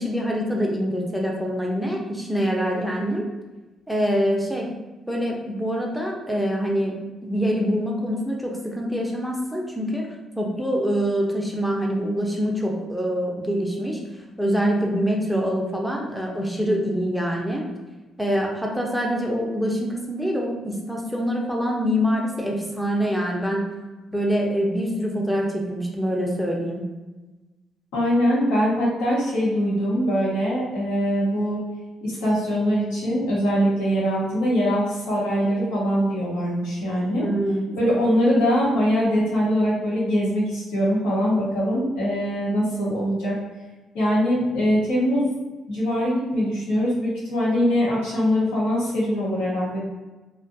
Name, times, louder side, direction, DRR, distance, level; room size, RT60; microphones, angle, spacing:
voice 1, 0.0-3.2 3.9-4.7 5.1-10.0 10.4-14.0 14.4-17.7 18.2-23.7 24.1-26.8 37.2-37.8, equal, ahead, -1 dB, 0.6 m, -25 dB
voice 2, 27.9-31.6 32.0-37.3 37.8-43.4 43.9-45.3 45.7-49.8, equal, 85° left, -7 dB, 0.9 m, -22 dB
2.5 x 2.2 x 2.6 m, 1.1 s
hypercardioid pair, 50°, 0 cm